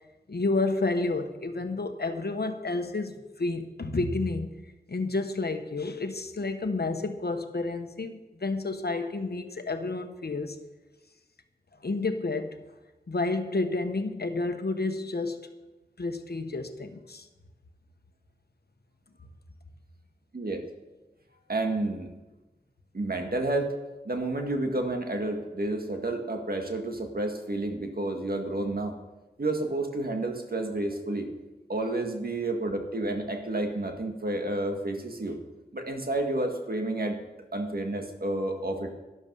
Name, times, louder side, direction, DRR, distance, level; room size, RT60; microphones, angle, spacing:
voice 1, 0.3-4.5 4.9-10.6 11.8-12.6 13.1-15.4 16.0-17.3, left 3 dB, 75° left, 7 dB, 1.1 m, -30 dB
voice 2, 20.3-20.7 21.5-22.1 22.9-23.8 24.0-28.9 29.4-31.4 31.7-35.4 35.7-37.2 37.5-38.9, right 2 dB, 65° right, 4 dB, 1.8 m, -30 dB
12.0 x 11.5 x 5.5 m, 1.1 s
wide cardioid pair, 45°, 17 cm